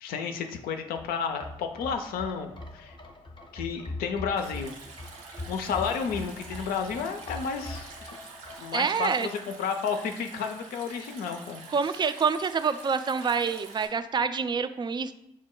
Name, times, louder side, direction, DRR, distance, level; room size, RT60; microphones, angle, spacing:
voice 1, 0.0-3.0 3.5-4.7 5.5-8.1 8.6-11.6, left 6 dB, 65° left, 6 dB, 0.5 m, -32 dB
sound 1, 0.8-9.8 10.1-10.2, left 2 dB, 30° left, 0.7 m, -42 dB
Stream, 4.4-13.9, right 4 dB, 80° right, 0.7 m, -46 dB
voice 2, 8.7-9.3 11.7-15.1, right 5 dB, 25° right, 10 dB, 0.4 m, -27 dB
6.0 x 2.1 x 3.7 m, 0.79 s
figure-of-eight pair, 40°, 17 cm